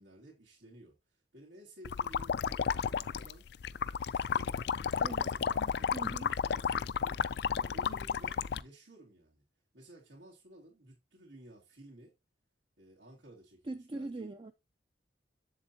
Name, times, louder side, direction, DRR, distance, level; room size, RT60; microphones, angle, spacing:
voice 1, 0.0-3.4 4.1-6.1 6.5-7.2 7.5-9.4 9.7-12.1 12.8-14.3, right 1 dB, 90° right, 2.8 m, -55 dB
sound 1, 1.8-8.6, left 7 dB, 65° left, 0.4 m, -32 dB
voice 2, 5.9-6.3 13.6-14.5, right 2 dB, 30° right, 0.4 m, -41 dB
7.7 x 7.4 x 2.8 m
head